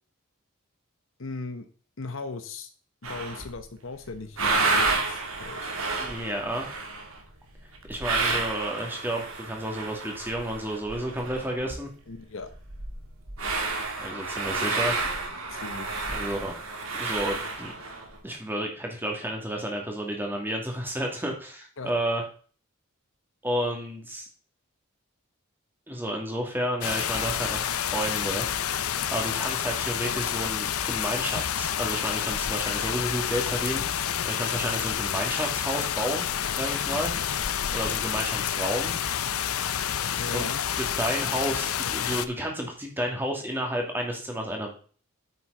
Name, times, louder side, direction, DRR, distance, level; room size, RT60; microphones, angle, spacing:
voice 1, 1.2-1.7 2.0-2.7 3.0-5.8 12.1-12.5 15.5-16.3 21.8-21.9 40.2-40.6, left 3 dB, 60° left, 8 dB, 1.0 m, -38 dB
sound 1, 3.0-3.6 4.0-11.8 12.1-12.2 12.4-18.2, right 3 dB, 70° right, 2.4 m, -30 dB
voice 2, 5.9-6.7 7.9-11.9 14.0-15.0 16.1-16.5 16.9-17.7 18.2-22.2 23.4-24.3 25.9-28.5 29.1-33.8 34.2-36.3 36.6-37.1 37.7-38.9 40.3-44.7, right 1 dB, 10° right, 1 dB, 2.3 m, -31 dB
sound 2, 26.8-42.3, left 9 dB, 90° left, 0.7 m, -29 dB
9.2 x 7.8 x 4.0 m, 0.41 s
head